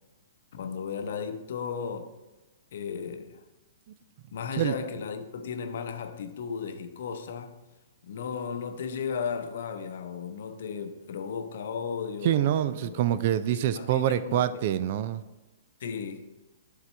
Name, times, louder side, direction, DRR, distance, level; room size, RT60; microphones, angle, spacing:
voice 1, 0.5-2.1 2.7-3.4 4.3-7.7 8.0-13.0 13.5-14.5 15.8-16.3, left 6 dB, 60° left, 0.7 m, -35 dB
voice 2, 12.2-15.2, right 11 dB, 50° right, 0.4 m, -26 dB
10.5 x 3.9 x 3.3 m
figure-of-eight pair, 115°, 0 cm